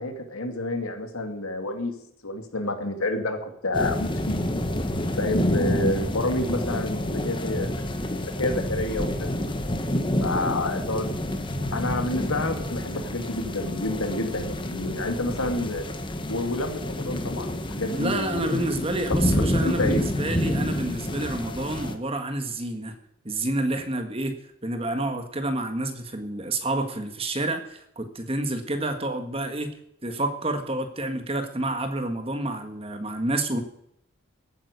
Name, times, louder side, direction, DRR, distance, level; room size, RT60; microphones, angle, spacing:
voice 1, 0.0-2.0 2.2-4.4 5.1-9.5 10.2-11.1 11.7-15.8 16.3-18.7 19.6-20.0, left 2 dB, 90° left, 5 dB, 2.5 m, -29 dB
sound 1, 3.7-21.9, left 1 dB, 25° left, 1.2 m, -28 dB
voice 2, 17.9-22.9 23.2-24.4 24.6-29.7 30.0-33.6, right 2 dB, 25° right, 7 dB, 1.6 m, -29 dB
15.0 x 9.3 x 6.7 m, 0.74 s
head